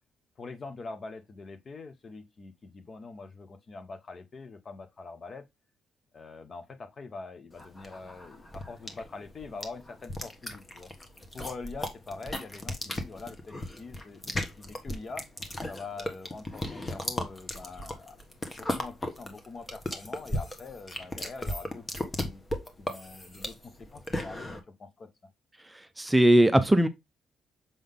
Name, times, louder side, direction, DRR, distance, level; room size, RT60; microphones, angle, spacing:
voice 1, 0.4-5.4 6.1-10.9 11.3-15.3 15.7-18.2 18.5-22.4 22.8-25.1, left 4 dB, 40° left, 1.0 m, -44 dB
sound 1, 7.6-24.6, left 1 dB, 25° left, 1.4 m, -36 dB
voice 2, 25.6-26.9, right 1 dB, 10° right, 0.6 m, -21 dB
6.9 x 3.9 x 3.6 m
cardioid pair, 90°, 0 cm